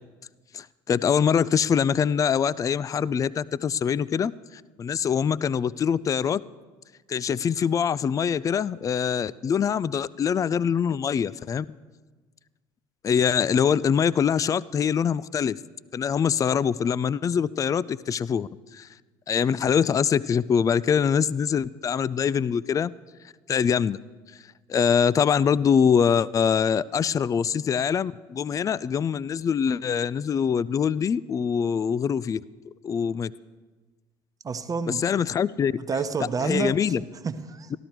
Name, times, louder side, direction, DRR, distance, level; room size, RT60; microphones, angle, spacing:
voice 1, 0.5-4.3 4.8-6.4 7.1-11.7 13.0-15.6 15.9-18.9 19.3-22.9 23.5-24.0 24.7-32.4 32.8-33.3 34.9-35.7 36.4-37.0, left 7 dB, 30° left, 20 dB, 0.3 m, -24 dB
voice 2, 34.4-35.0 35.9-37.8, right 5 dB, 30° right, 10 dB, 0.9 m, -29 dB
13.0 x 13.0 x 4.5 m, 1.3 s
supercardioid pair, 75°, 11 cm